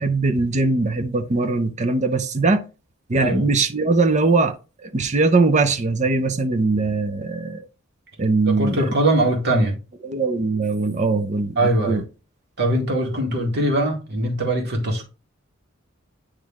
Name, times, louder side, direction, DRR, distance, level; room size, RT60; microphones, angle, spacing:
voice 1, 0.0-2.7 3.1-7.6 8.2-8.8 10.0-11.6 11.9-12.0, right 3 dB, 35° right, 0.7 m, -21 dB
voice 2, 3.2-3.5 8.5-9.8 11.6-12.0 12.6-15.0, right 1 dB, 55° right, 2.0 m, -21 dB
9.3 x 3.3 x 3.6 m
head